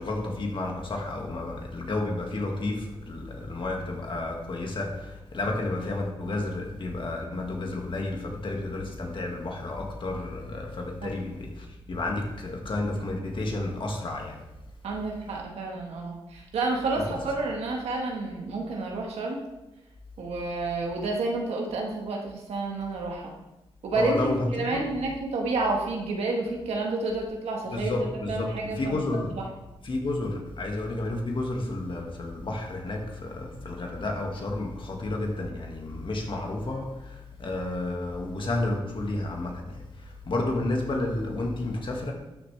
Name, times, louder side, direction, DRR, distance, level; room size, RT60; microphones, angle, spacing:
voice 1, 0.0-14.4 17.0-17.2 23.9-24.9 27.7-29.4 29.8-42.1, left 2 dB, 55° left, 1 dB, 2.0 m, -31 dB
voice 2, 14.8-19.4 20.2-23.3 23.8-27.9 28.3-29.0 29.3-29.4, right 2 dB, 90° right, 1 dB, 1.6 m, -30 dB
12.5 x 6.6 x 3.4 m, 0.99 s
cardioid pair, 65°, 10 cm